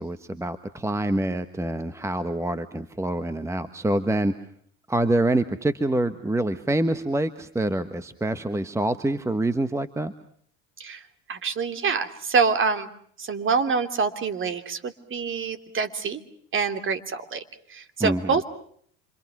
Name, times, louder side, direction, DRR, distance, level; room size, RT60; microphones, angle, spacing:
voice 1, 0.0-4.3 4.9-10.1 18.0-18.3, right 1 dB, 10° right, 11 dB, 1.4 m, -26 dB
voice 2, 10.8-12.9 13.2-16.2 16.5-18.4, right 5 dB, 35° right, 10 dB, 3.0 m, -26 dB
28.5 x 26.0 x 6.1 m, 0.64 s
supercardioid pair, 105°, 36 cm